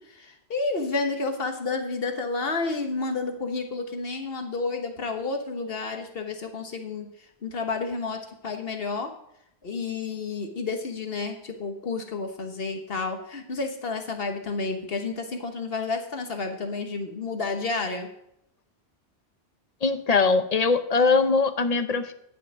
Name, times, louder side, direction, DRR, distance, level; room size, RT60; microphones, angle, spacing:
voice 1, 0.1-7.1 7.4-9.1 9.6-18.1, left 3 dB, 65° left, 4 dB, 1.5 m, -30 dB
voice 2, 19.8-22.1, left 4 dB, 40° left, 10 dB, 0.7 m, -22 dB
11.0 x 5.8 x 6.3 m, 0.78 s
omnidirectional pair, 1.1 m